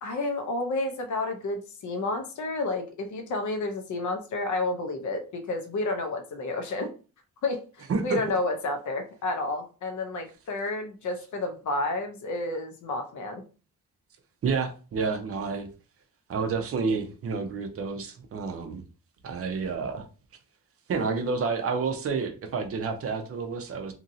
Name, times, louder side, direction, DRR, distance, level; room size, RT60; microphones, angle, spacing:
voice 1, 0.0-6.9 7.4-7.6 8.0-13.4, left 2 dB, 60° left, 0.7 m, -30 dB
voice 2, 7.9-8.2 14.4-15.7 16.3-18.8 19.2-20.1 20.9-23.9, right 4 dB, 45° right, 0.5 m, -29 dB
2.8 x 2.6 x 2.6 m
wide cardioid pair, 175°, 33 cm